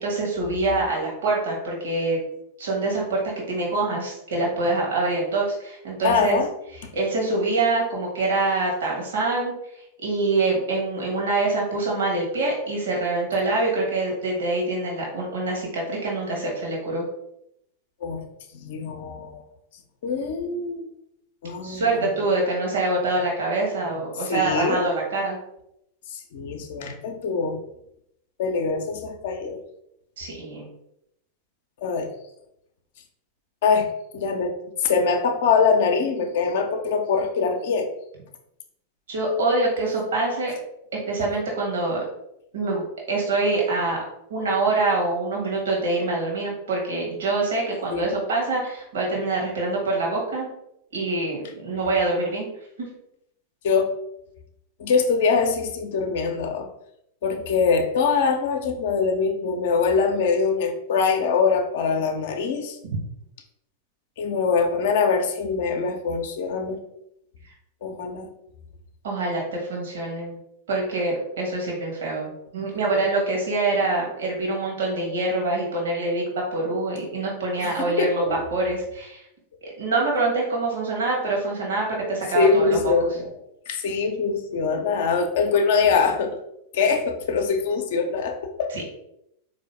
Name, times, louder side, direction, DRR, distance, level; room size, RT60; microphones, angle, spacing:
voice 1, 0.0-2.2 2.6-3.2 3.5-6.4 6.9-9.5 10.0-17.0 21.6-25.4 30.2-30.7 39.1-40.5 41.1-42.0 42.5-42.8 43.1-44.0 44.3-50.5 50.9-52.5 69.0-70.4 70.7-78.2 78.5-79.2 79.8-82.8 88.7-88.9, right 2 dB, 60° right, -3 dB, 1.2 m, -25 dB
voice 2, 6.0-6.5 6.8-6.9 18.0-18.2 18.5-19.4 20.0-20.9 21.4-22.1 24.2-24.9 26.1-27.6 28.4-29.6 31.8-32.1 33.6-33.9 34.1-37.9 47.9-48.1 53.6-53.9 54.8-56.7 57.2-62.8 64.2-66.8 67.8-68.3 77.6-78.4 82.3-83.3 83.7-86.4 86.7-88.7, left 5 dB, 55° left, 5 dB, 0.5 m, -23 dB
4.0 x 2.7 x 3.1 m, 0.79 s
figure-of-eight pair, 90°, 0 cm